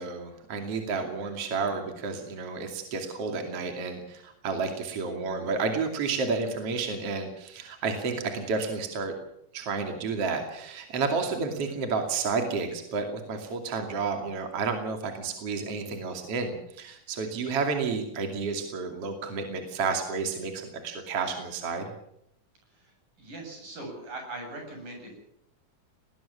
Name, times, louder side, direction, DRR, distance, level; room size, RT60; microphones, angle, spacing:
voice 1, 0.0-9.1 9.5-21.9, right 4 dB, 50° right, 4 dB, 3.5 m, -31 dB
voice 2, 22.7-25.2, right 2 dB, 85° right, 3 dB, 9.5 m, -41 dB
20.5 x 19.0 x 7.1 m, 0.76 s
omnidirectional pair, 3.7 m